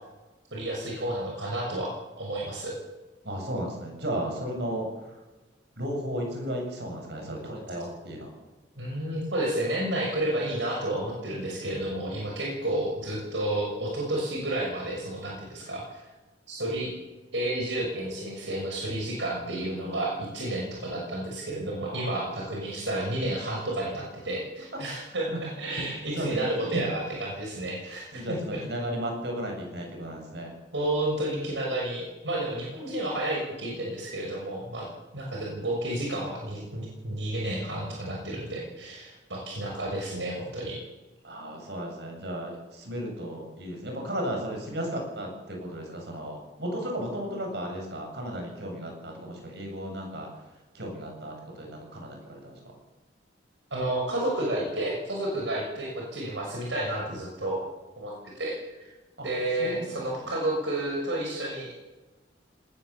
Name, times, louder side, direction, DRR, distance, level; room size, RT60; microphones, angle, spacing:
voice 1, 0.5-2.7 8.8-16.0 16.5-16.9 17.3-28.6 30.7-34.9 35.1-40.8 53.7-57.6 58.0-58.6 59.2-61.8, right 1 dB, 80° right, -1 dB, 6.2 m, -31 dB
voice 2, 3.2-5.2 5.8-8.3 11.6-12.4 21.8-22.2 24.7-24.8 25.3-25.4 26.1-26.8 28.1-30.5 41.2-50.3 50.7-52.8 59.2-59.3 59.6-60.4, equal, 65° right, 1 dB, 7.6 m, -35 dB
20.0 x 19.5 x 7.3 m, 1.1 s
head